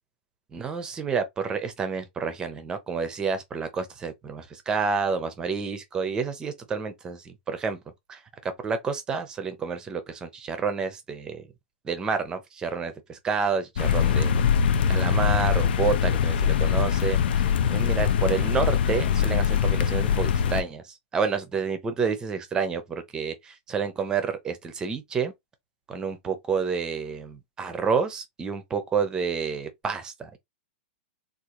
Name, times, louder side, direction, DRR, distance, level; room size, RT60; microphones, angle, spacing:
voice 1, 0.5-7.8 8.1-11.5 11.8-14.4 14.9-25.3 25.9-30.4, right 5 dB, 10° right, 0.6 m, -29 dB
sound 1, 13.8-20.6, left 7 dB, 60° left, 0.6 m, -23 dB
3.7 x 2.5 x 2.9 m
supercardioid pair, 165°, 6 cm